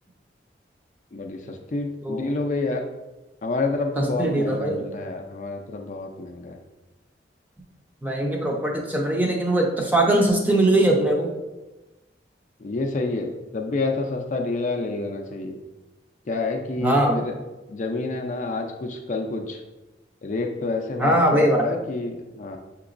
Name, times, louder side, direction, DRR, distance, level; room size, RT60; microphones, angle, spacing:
voice 1, 1.1-2.8 3.4-6.6 12.6-15.6 16.3-17.3 17.7-19.6 20.2-22.6, left 3 dB, 40° left, 3 dB, 0.4 m, -28 dB
voice 2, 2.0-2.3 4.0-4.9 8.0-11.3 16.8-17.3 21.0-21.7, right 1 dB, 10° right, -1 dB, 0.5 m, -21 dB
6.8 x 2.9 x 2.5 m, 1.1 s
head